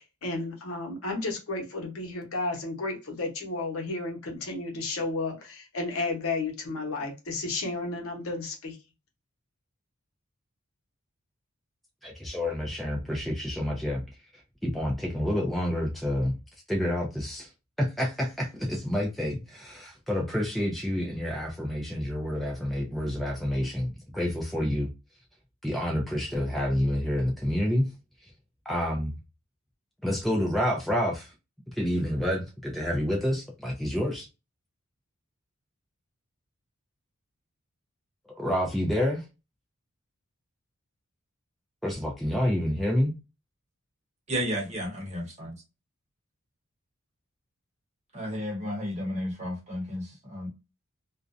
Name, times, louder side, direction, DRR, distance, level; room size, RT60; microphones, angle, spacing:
voice 1, 0.0-8.8, left 3 dB, 80° left, 0.8 m, -32 dB
voice 2, 12.0-14.0 14.6-16.3 16.7-17.5 17.8-24.9 25.6-27.9 28.7-29.1 30.0-31.3 31.8-34.3 38.4-39.2 41.8-43.1, equal, ahead, 0.4 m, -28 dB
voice 3, 44.3-45.5 48.1-50.5, equal, 30° right, 0.9 m, -32 dB
2.4 x 2.1 x 2.4 m
head